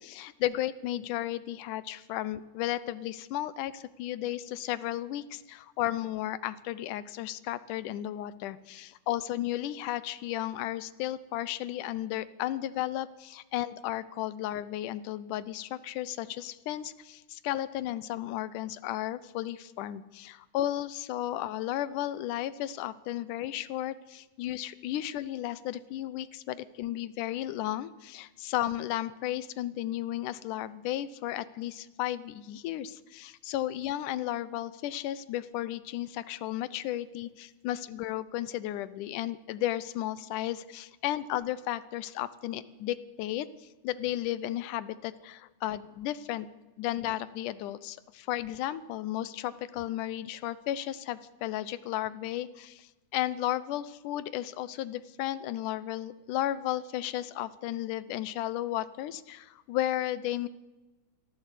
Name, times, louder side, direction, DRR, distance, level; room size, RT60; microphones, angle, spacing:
voice 1, 0.0-43.5 43.8-46.5 46.8-60.5, left 13 dB, 85° left, 16 dB, 2.3 m, -34 dB
23.0 x 15.0 x 8.3 m, 1.1 s
omnidirectional pair, 3.6 m